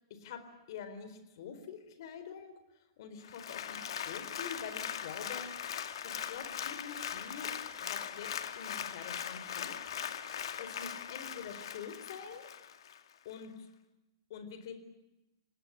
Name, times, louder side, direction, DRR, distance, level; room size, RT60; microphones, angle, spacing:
voice 1, 0.7-5.5 6.0-7.5 7.8-8.3 8.6-10.0 10.6-12.5 13.2-13.7 14.3-14.7, left 6 dB, 55° left, 9 dB, 4.2 m, -46 dB
Applause, 3.2-13.0 13.4-13.5, left 9 dB, 75° left, 2.2 m, -40 dB
27.5 x 19.0 x 9.9 m, 0.99 s
supercardioid pair, 170°, 3 cm